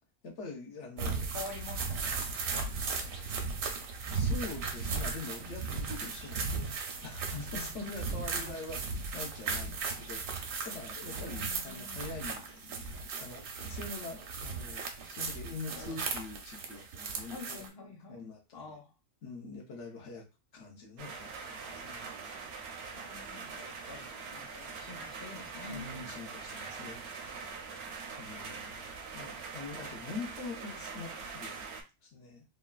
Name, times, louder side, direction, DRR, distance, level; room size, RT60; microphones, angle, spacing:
voice 1, 0.2-1.3 4.1-6.8 7.0-18.7 19.2-20.2 20.5-22.1 25.7-27.5 28.2-28.9 29.1-31.6 32.0-32.4, left 3 dB, 65° left, 1 dB, 1.0 m, -44 dB
sound 1, 1.0-17.7, right 4 dB, 85° right, 1.0 m, -36 dB
voice 2, 1.3-2.1 2.5-3.2 7.5-8.6 11.1-12.0 15.7-16.0 17.3-18.2 18.5-18.9 22.9-25.9, left 3 dB, 35° left, 0 dB, 0.4 m, -47 dB
sound 2, 21.0-31.8, right 5 dB, 65° right, 0.7 m, -43 dB
3.2 x 2.1 x 2.3 m, 0.27 s
omnidirectional pair, 1.4 m